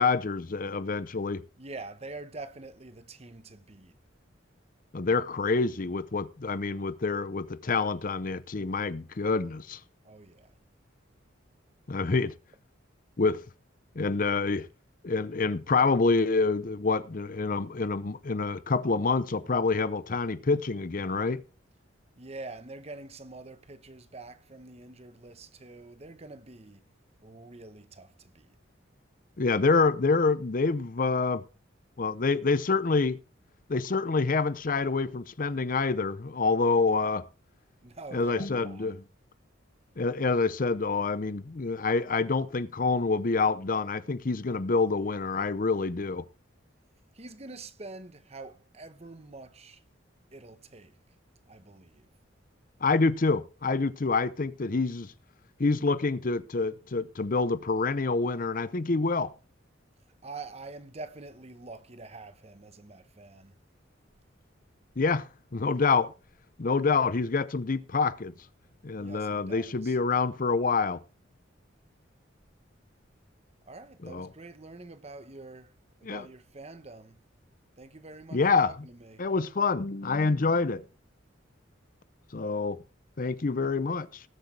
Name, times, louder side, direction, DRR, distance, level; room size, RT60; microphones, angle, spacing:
voice 1, 0.0-1.4 4.9-9.8 11.9-12.3 13.2-13.4 14.0-14.7 15.0-21.4 29.4-31.4 32.0-33.2 33.7-37.2 38.1-39.0 40.0-46.3 52.8-55.1 55.6-59.3 65.0-66.1 66.6-68.3 68.8-71.0 74.0-74.3 76.0-76.2 78.3-78.7 79.2-80.8 82.3-82.8 83.2-84.2, left 4 dB, 45° left, 0.6 m, -27 dB
voice 2, 1.6-3.9 10.0-10.5 22.2-26.9 27.2-28.6 37.8-39.0 47.1-49.8 50.3-51.0 51.5-52.1 60.2-63.5 69.0-70.0 73.7-75.7 76.0-77.2 77.8-79.2, right 3 dB, 35° right, 1.0 m, -46 dB
19.5 x 8.0 x 3.3 m
head